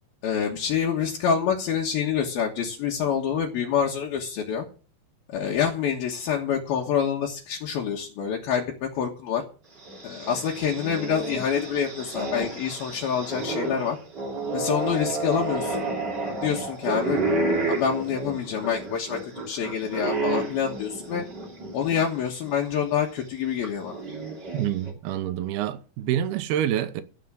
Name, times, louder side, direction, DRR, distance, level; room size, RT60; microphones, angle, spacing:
voice 1, 0.2-4.7 5.3-9.4 10.0-14.0 14.5-15.8 16.4-17.2 17.7-19.2 19.5-21.2 21.7-24.0, left 7 dB, 70° left, 3.1 m, -26 dB
sound 1, 9.8-22.0 22.5-22.6 23.6-24.9, right 2 dB, 30° right, 3.0 m, -31 dB
voice 2, 24.5-27.0, right 11 dB, 75° right, 2.5 m, -27 dB
15.0 x 5.4 x 7.5 m
omnidirectional pair, 4.8 m